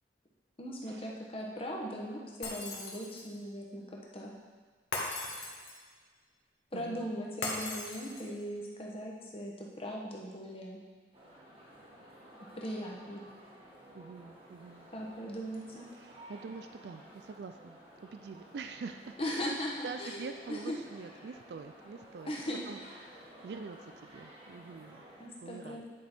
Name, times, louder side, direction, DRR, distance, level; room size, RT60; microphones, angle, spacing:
voice 1, 0.6-3.8 4.1-4.3 6.7-10.8 12.5-13.2 14.9-15.9 19.2-20.7 22.2-22.6 25.2-25.9, equal, 30° left, -2 dB, 1.1 m, -39 dB
Shatter, 2.4-3.4 4.9-5.9 7.4-8.4, left 3 dB, 70° left, 1.3 m, -38 dB
voice 2, 6.7-7.2 13.9-14.9 15.9-19.6 19.8-22.3 22.7-25.1 25.4-25.9, right 5 dB, 65° right, 7 dB, 0.4 m, -45 dB
sound 1, 11.1-25.3, equal, 30° right, 1.3 m, -54 dB
9.5 x 5.2 x 4.4 m, 1.5 s
head